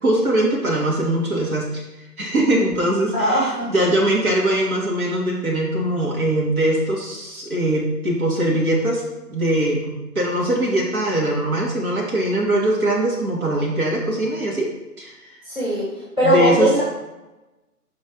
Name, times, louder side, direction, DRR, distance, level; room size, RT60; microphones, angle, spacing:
voice 1, 0.0-1.8 2.2-9.0 9.3-14.7 15.0-15.1 16.2-16.7, right 1 dB, 60° right, -3 dB, 2.4 m, -21 dB
voice 2, 3.1-3.7 15.5-15.8 16.2-16.8, right 1 dB, 10° right, -8 dB, 1.7 m, -19 dB
5.2 x 4.4 x 5.5 m, 1.0 s
figure-of-eight pair, 150°, 49 cm